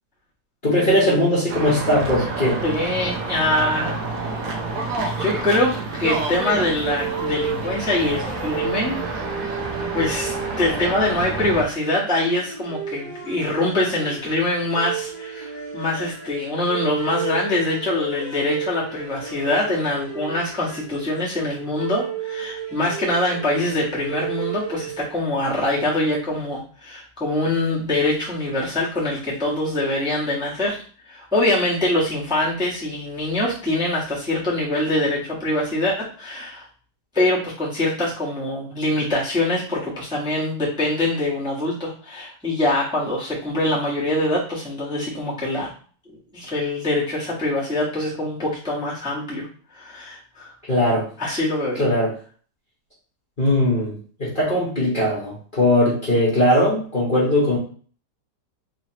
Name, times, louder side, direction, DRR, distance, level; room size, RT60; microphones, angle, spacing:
voice 1, 0.6-2.6 50.7-51.1 51.8-52.1 53.4-53.9 54.2-57.6, left 1 dB, 30° left, -8 dB, 1.2 m, -19 dB
sound 1, 1.5-11.6, right 3 dB, 60° right, 1.0 m, -29 dB
voice 2, 2.6-4.0 5.0-9.0 9.9-30.8 31.1-36.7 37.1-45.7 46.1-49.5 49.7-50.5 51.2-51.8, left 1 dB, 5° right, -7 dB, 1.1 m, -24 dB
sound 2, 6.8-25.3, right 6 dB, 35° right, 1.1 m, -33 dB
4.0 x 3.1 x 2.9 m, 0.42 s
omnidirectional pair, 1.9 m